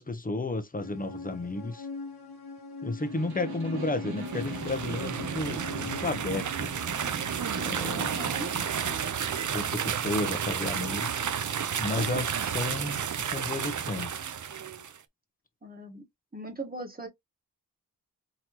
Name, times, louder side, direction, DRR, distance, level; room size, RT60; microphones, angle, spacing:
voice 1, 0.0-1.9 2.8-6.7 7.6-8.1 9.5-11.2 11.8-14.2, left 2 dB, 25° left, 0.9 m, -33 dB
sound 1, 0.8-6.7, left 4 dB, 85° left, 1.4 m, -42 dB
Snare drum, 3.0-9.1, right 1 dB, 80° right, 1.3 m, -40 dB
sound 2, 4.2-15.0, right 8 dB, 55° right, 0.6 m, -32 dB
voice 2, 7.9-8.5 15.6-16.0 16.3-17.1, right 2 dB, 25° right, 1.4 m, -39 dB
3.9 x 2.9 x 2.9 m
wide cardioid pair, 70°, 37 cm